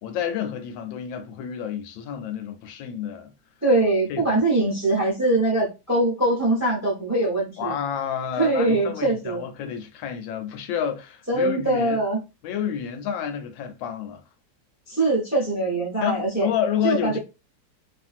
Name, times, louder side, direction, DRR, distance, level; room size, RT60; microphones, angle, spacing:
voice 1, 0.0-3.3 4.1-4.4 7.6-12.0 12.4-14.2 16.0-17.2, left 8 dB, 90° left, 1.4 m, -29 dB
voice 2, 3.6-7.7 8.4-9.4 11.3-12.2 14.9-16.5 16.8-17.2, right 2 dB, 20° right, 0.5 m, -22 dB
3.0 x 2.5 x 2.4 m
omnidirectional pair, 2.0 m